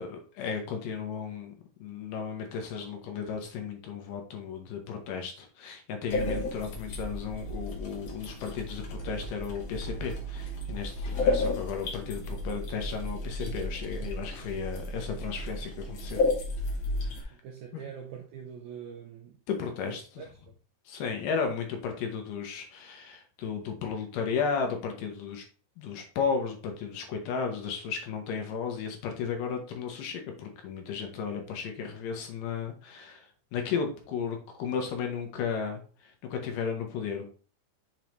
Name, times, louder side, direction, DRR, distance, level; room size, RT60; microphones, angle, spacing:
voice 1, 0.0-1.5 1.8-16.2 17.0-17.3 17.7-17.8 19.5-20.2 20.9-25.4 25.8-33.3 33.5-35.8 36.2-37.2, left 6 dB, 70° left, 2.5 m, -34 dB
sound 1, 6.1-17.2, left 2 dB, 55° left, 2.0 m, -33 dB
voice 2, 17.3-19.4 19.8-20.3, right 8 dB, 80° right, 1.7 m, -44 dB
7.1 x 4.5 x 3.1 m
omnidirectional pair, 4.2 m